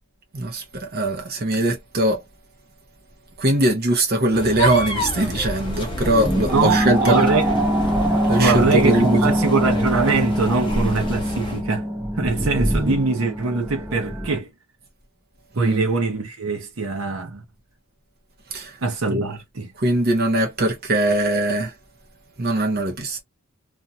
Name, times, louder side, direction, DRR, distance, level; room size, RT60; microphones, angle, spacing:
voice 1, 0.3-2.2 3.4-7.2 8.3-9.2 15.6-15.8 18.5-18.7 19.0-19.3 19.8-21.7 22.4-23.2, right 1 dB, 50° right, 0.8 m, -21 dB
sound 1, 4.3-11.6, left 2 dB, 25° left, 0.7 m, -30 dB
sound 2, 5.0-14.4, equal, 10° right, 0.7 m, -23 dB
voice 2, 6.5-7.5 8.4-11.9 12.2-14.5 15.5-17.4 18.8-19.7, right 3 dB, 75° right, 0.8 m, -23 dB
2.6 x 2.3 x 2.6 m
head